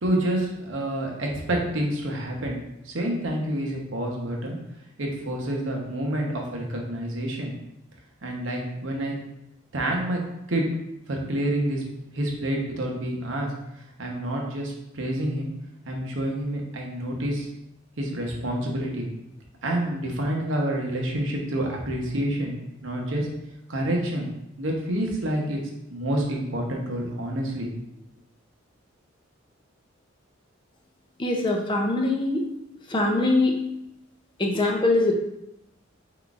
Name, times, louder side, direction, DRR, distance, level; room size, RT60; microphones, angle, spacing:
voice 1, 0.0-2.6 2.8-4.6 5.0-7.5 8.2-9.1 9.7-10.2 10.5-10.7 11.1-11.8 12.1-13.5 14.0-15.5 15.9-17.5 18.0-19.1 19.6-22.5 22.8-23.3 23.7-24.3 24.6-25.6 25.9-27.7, right 1 dB, 70° right, 0 dB, 0.9 m, -28 dB
voice 2, 31.2-32.4 32.9-33.6 34.4-35.1, left 2 dB, 25° left, 1 dB, 0.5 m, -22 dB
4.5 x 3.8 x 2.4 m, 0.85 s
head